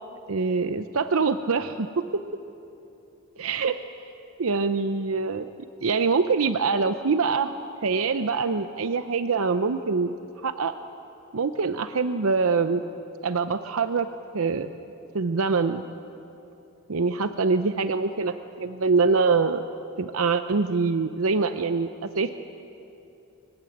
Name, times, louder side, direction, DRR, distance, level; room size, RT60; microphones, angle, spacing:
voice 1, 0.3-1.9 2.1-2.2 3.4-3.8 4.4-5.5 5.8-7.5 7.8-10.1 10.4-10.7 11.3-12.8 13.2-14.1 14.3-14.7 15.1-15.8 16.9-19.6 20.0-21.9 22.1-22.3, right 4 dB, 80° right, 10 dB, 0.7 m, -24 dB
25.0 x 15.5 x 9.3 m, 2.9 s
head